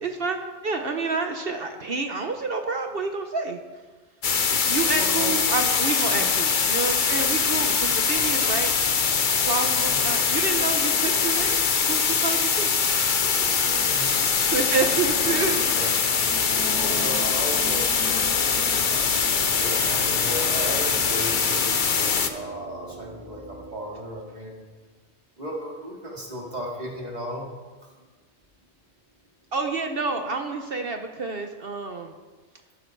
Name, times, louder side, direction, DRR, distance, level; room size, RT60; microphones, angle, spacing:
voice 1, 0.0-3.6 4.4-8.7 9.4-11.6 11.9-12.7 14.4-15.6 15.8-15.9 29.5-32.1, right 4 dB, 55° right, 5 dB, 1.1 m, -28 dB
sound 1, 4.2-22.3, left 5 dB, 45° left, 1.0 m, -23 dB
voice 2, 4.9-5.4 6.1-6.3 9.8-10.0 13.8-14.2 15.2-15.4 15.7-15.9 16.7-18.4 18.7-19.1 19.3-24.6 25.4-27.5 27.8-28.1, equal, 35° right, -2 dB, 3.0 m, -35 dB
sound 2, 16.2-23.7, equal, 75° right, 4.4 m, -41 dB
15.5 x 12.0 x 4.6 m, 1.3 s
omnidirectional pair, 1.2 m